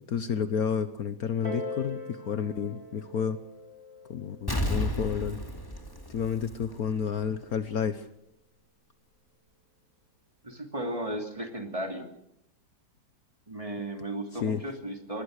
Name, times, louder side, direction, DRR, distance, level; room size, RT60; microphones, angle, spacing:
voice 1, 0.1-3.4 4.1-5.4 6.1-8.1 14.3-14.6, left 7 dB, 60° left, 11 dB, 1.4 m, -30 dB
Piano, 1.4-6.6 7.5-7.6, left 2 dB, 50° right, 6.0 m, -43 dB
Explosion, 4.5-7.1 7.4-7.5, left 1 dB, 10° left, 2.5 m, -32 dB
voice 2, 10.4-12.1 13.5-15.2, right 1 dB, 20° right, 4 dB, 2.8 m, -35 dB
25.0 x 20.0 x 6.6 m, 0.79 s
omnidirectional pair, 1.9 m